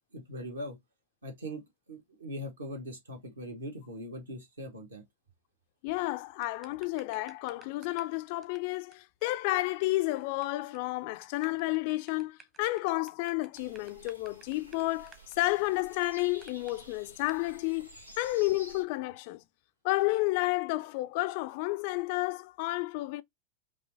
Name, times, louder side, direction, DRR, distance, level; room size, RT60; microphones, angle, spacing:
voice 1, 0.1-0.8 1.2-1.6 1.9-5.0, equal, 70° right, 1.8 m, -41 dB
voice 2, 5.8-17.9 18.2-19.4 19.8-23.2, left 20 dB, 45° left, 0.3 m, -31 dB
sound 1, 6.4-8.1 8.4-8.6 8.9-9.0 9.2-9.3 9.5-9.6 9.9-10.4 10.7-10.9 11.2-16.7 17.3-17.4, right 5 dB, 25° right, 0.9 m, -55 dB
sound 2, 13.5-18.8, right 1 dB, 90° right, 1.8 m, -52 dB
5.4 x 2.6 x 2.7 m
figure-of-eight pair, 90°, 0 cm